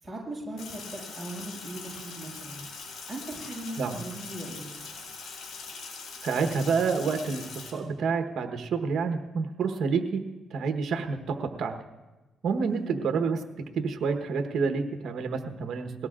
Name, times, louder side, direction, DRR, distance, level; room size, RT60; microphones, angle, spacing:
voice 1, 0.0-2.6 3.1-4.7 12.6-13.1, right 1 dB, 10° right, -6 dB, 6.3 m, -39 dB
Sink (filling or washing), 0.6-7.7, left 4 dB, 70° left, 3.1 m, -42 dB
voice 2, 6.2-7.4 7.7-10.2 10.5-11.7 12.4-13.4 13.7-15.9, right 5 dB, 65° right, 5 dB, 1.1 m, -28 dB
21.0 x 17.5 x 2.5 m, 1.1 s
cardioid pair, 90°, 0 cm